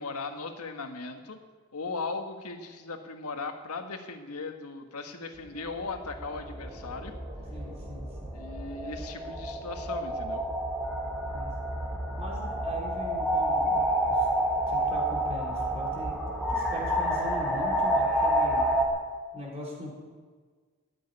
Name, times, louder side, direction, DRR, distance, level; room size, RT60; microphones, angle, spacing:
voice 1, 0.0-1.4 1.7-7.1 8.3-10.4, left 3 dB, 90° left, 6 dB, 1.5 m, -38 dB
sound 1, 5.6-18.9, right 1 dB, ahead, 2.0 m, -29 dB
voice 2, 7.5-8.3 11.3-11.5 12.2-14.3 14.7-16.1 16.5-18.7 19.3-19.9, equal, 30° right, -3 dB, 4.1 m, -40 dB
14.0 x 7.6 x 9.9 m, 1.5 s
head